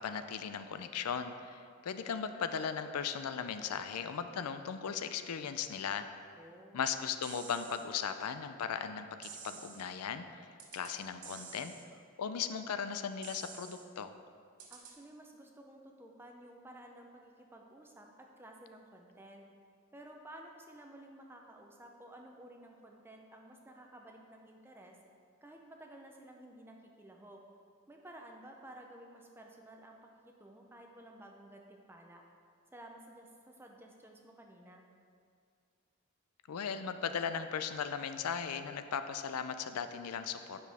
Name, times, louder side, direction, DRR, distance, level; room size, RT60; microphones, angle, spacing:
voice 1, 0.0-6.2 6.7-11.7 12.2-14.1 36.5-40.6, left 7 dB, 90° left, 9 dB, 0.4 m, -37 dB
voice 2, 6.4-6.8 14.7-19.4 19.9-25.0 25.4-27.4 27.9-32.2 32.7-34.9, right 1 dB, 10° right, 1 dB, 0.6 m, -53 dB
sound 1, 7.2-7.8 9.2-9.8 10.6-10.9 11.2-11.8 13.2-13.8 14.6-14.9, right 6 dB, 90° right, 1.0 m, -49 dB
9.8 x 6.1 x 3.5 m, 2.3 s
head